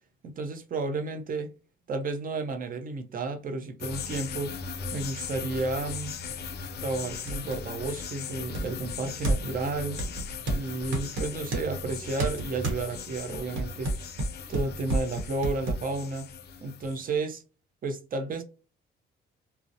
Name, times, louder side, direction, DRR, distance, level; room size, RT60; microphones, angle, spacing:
voice 1, 0.2-1.5 1.9-4.5 4.9-6.1 6.8-10.0 10.5-13.9 14.5-16.3 16.6-17.4 17.8-18.4, right 3 dB, 45° right, 0.6 m, -32 dB
sound 1, 3.8-17.1, left 5 dB, 55° left, 0.4 m, -39 dB
sound 2, 7.3-7.7 8.5-9.6 10.0-11.7 12.2-12.8 13.3-15.8, right 2 dB, 75° right, 0.9 m, -30 dB
2.6 x 2.0 x 2.5 m
cardioid pair, 90°, 20 cm